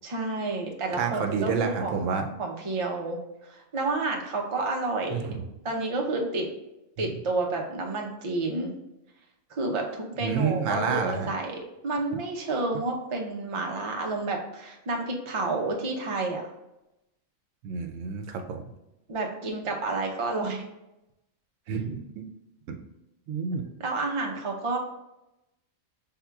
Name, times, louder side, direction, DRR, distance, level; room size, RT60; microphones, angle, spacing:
voice 1, 0.0-2.1 2.4-3.2 3.4-5.3 5.6-6.5 7.0-8.7 9.5-11.5 11.8-16.5 19.1-20.6 23.8-24.8, right 3 dB, 45° right, 1 dB, 0.4 m, -30 dB
voice 2, 1.0-2.3 5.1-5.4 7.0-7.1 10.2-11.3 17.6-18.6 21.7-22.2 22.7-22.8 23.3-23.6, right 5 dB, 75° right, 5 dB, 0.9 m, -29 dB
5.9 x 3.6 x 2.3 m, 0.93 s
omnidirectional pair, 1.4 m